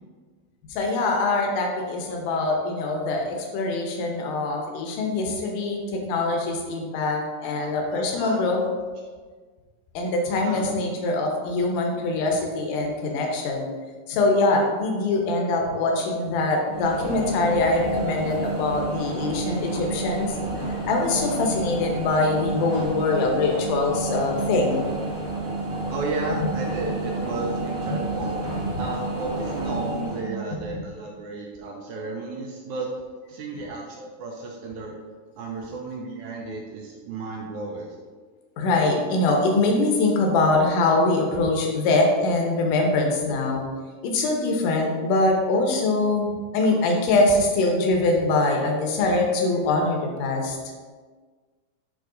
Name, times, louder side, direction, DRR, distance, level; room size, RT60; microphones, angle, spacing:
voice 1, 0.7-8.6 9.9-13.7 14.1-20.3 20.8-24.9 30.7-30.8 38.6-43.7 44.0-50.6, left 2 dB, 75° left, 1 dB, 2.4 m, -23 dB
voice 2, 1.8-2.7 7.0-7.1 7.6-8.4 10.4-10.7 25.9-28.4 28.8-32.9 33.3-35.0 35.4-38.0, right 3 dB, 80° right, -1 dB, 1.8 m, -34 dB
sound 1, 16.7-30.2, right 2 dB, 60° right, 0.9 m, -30 dB
8.7 x 3.2 x 3.8 m, 1.5 s
omnidirectional pair, 4.0 m